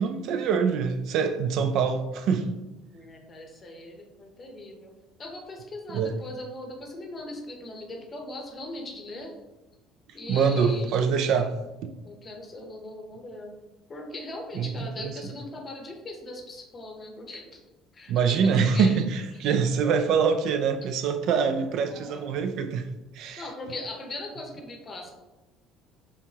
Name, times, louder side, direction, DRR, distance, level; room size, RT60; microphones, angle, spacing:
voice 1, 0.0-2.6 5.9-6.2 10.3-11.5 11.8-11.9 14.6-14.7 15.0-15.1 18.1-22.9 23.2-23.4, right 6 dB, 55° right, 0.3 m, -24 dB
voice 2, 2.9-4.9 5.2-9.4 10.1-11.0 12.0-13.6 13.9-17.6 17.9-19.0 19.6-19.7 21.7-22.3 23.4-25.1, left 2 dB, 20° left, 0.7 m, -40 dB
4.6 x 3.5 x 2.8 m
cardioid pair, 170°, 0 cm